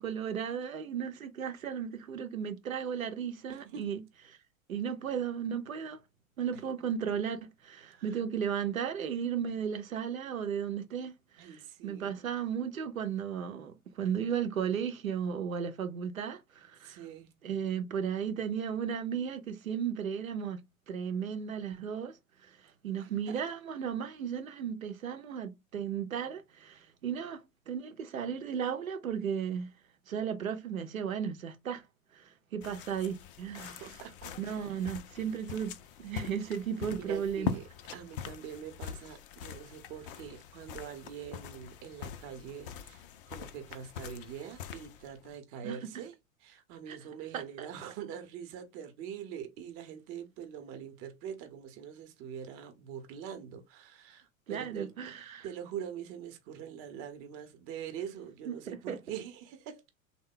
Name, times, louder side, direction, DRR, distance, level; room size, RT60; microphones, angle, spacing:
voice 1, 0.0-4.0 4.7-6.0 6.4-17.0 17.4-22.2 22.4-22.6 22.8-29.7 30.1-31.8 32.1-33.8 34.4-37.6 45.6-45.8 46.9-47.0 47.3-47.7 54.5-55.5 58.5-59.0, right 7 dB, 75° right, 0.7 m, -35 dB
voice 2, 3.5-3.8 7.9-8.2 11.4-12.1 16.8-17.3 22.6-23.4 33.8-34.3 37.0-37.6 37.9-46.1 46.4-54.9 55.4-59.8, right 8 dB, 35° right, 0.8 m, -44 dB
sound 1, 32.6-45.4, left 9 dB, 40° left, 0.5 m, -43 dB
3.5 x 2.2 x 3.7 m
figure-of-eight pair, 90°, 42 cm